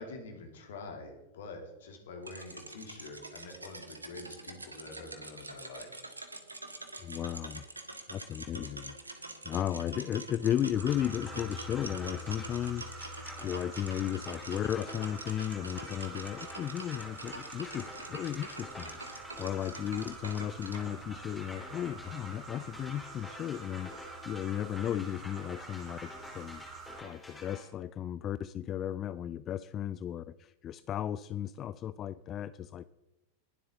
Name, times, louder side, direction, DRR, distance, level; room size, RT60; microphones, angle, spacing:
voice 1, 0.0-6.1, left 3 dB, 60° left, 4 dB, 2.9 m, -46 dB
sound 1, 2.2-20.9, right 2 dB, 80° right, 1.4 m, -46 dB
voice 2, 7.0-7.6 8.1-26.6 27.0-32.8, left 10 dB, 30° left, 15 dB, 0.3 m, -35 dB
sound 2, 10.7-27.0, right 3 dB, 30° right, 2.8 m, -47 dB
sound 3, 10.9-27.6, left 1 dB, 10° left, 2.9 m, -49 dB
20.5 x 7.8 x 3.8 m, 1.0 s
figure-of-eight pair, 90°, 0 cm